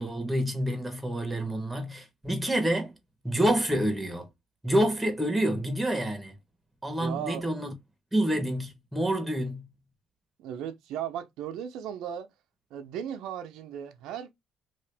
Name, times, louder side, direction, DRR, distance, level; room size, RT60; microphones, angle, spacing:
voice 1, 0.0-3.0 3.2-4.3 4.6-6.3 6.8-7.7 8.1-9.7, right 1 dB, 10° right, 1.2 m, -28 dB
voice 2, 7.0-7.4 10.4-12.3 12.7-14.3, right 9 dB, 80° right, 0.6 m, -36 dB
2.8 x 2.5 x 3.4 m
cardioid pair, 105°, 0 cm